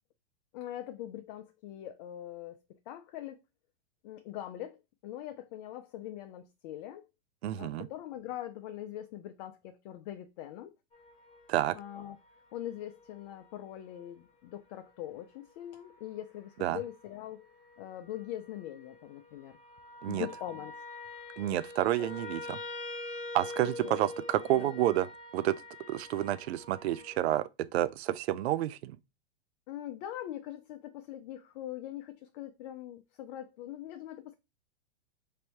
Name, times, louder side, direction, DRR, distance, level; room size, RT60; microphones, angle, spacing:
voice 1, 0.5-3.4 4.0-7.1 7.6-10.7 11.7-12.2 12.5-19.6 20.1-20.7 21.5-21.6 22.0-22.1 23.6-24.0 24.5-24.7 29.7-34.4, left 12 dB, 40° left, 0.5 m, -42 dB
voice 2, 7.4-7.9 11.5-11.7 16.6-16.8 20.0-20.3 21.4-22.6 23.3-25.1 25.3-25.5 25.9-29.0, right 13 dB, 75° right, 0.5 m, -29 dB
sound 1, 10.9-14.1 15.2-15.3 15.7-16.1 16.8-17.2 17.6-27.3, left 2 dB, 15° left, 1.1 m, -45 dB
3.3 x 2.6 x 4.5 m
hypercardioid pair, 130°, 33 cm